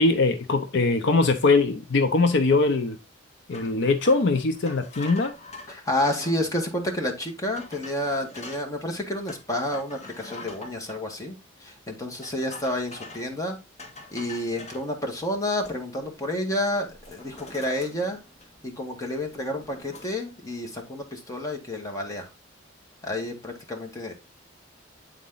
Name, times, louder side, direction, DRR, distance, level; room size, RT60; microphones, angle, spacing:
voice 1, 0.0-3.0 3.5-5.3, left 3 dB, 60° left, 0.6 m, -21 dB
sound 1, 3.5-6.4 7.0-7.1 7.6-8.7 9.3-11.0 12.2-13.3 13.8-14.9 15.3-16.0 16.4-16.6 16.9-18.8 19.1-20.1, left 2 dB, 35° left, 2.0 m, -44 dB
voice 2, 5.7-13.6 14.1-18.2 18.6-22.3 23.0-24.1, left 1 dB, 15° left, 1.5 m, -30 dB
8.5 x 4.1 x 3.8 m
head